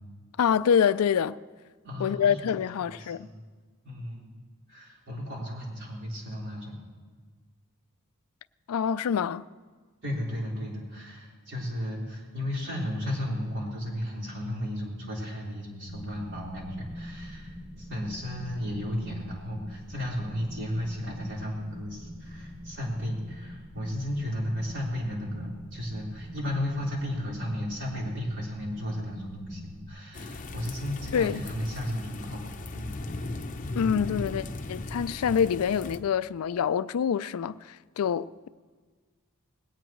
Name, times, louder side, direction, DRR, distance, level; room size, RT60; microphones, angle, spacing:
voice 1, 0.4-1.4 2.0-3.3 8.7-9.4 31.1-31.4 33.8-38.5, left 7 dB, 80° left, 0.4 m, -26 dB
voice 2, 1.8-2.4 3.0-3.4 3.8-4.4 4.7-6.8 10.0-32.9, left 1 dB, 55° right, 4.2 m, -34 dB
sound 1, 15.9-29.9, equal, 15° right, 3.2 m, -44 dB
sound 2, 30.1-36.0, left 2 dB, 35° left, 0.7 m, -37 dB
20.0 x 17.0 x 3.1 m
head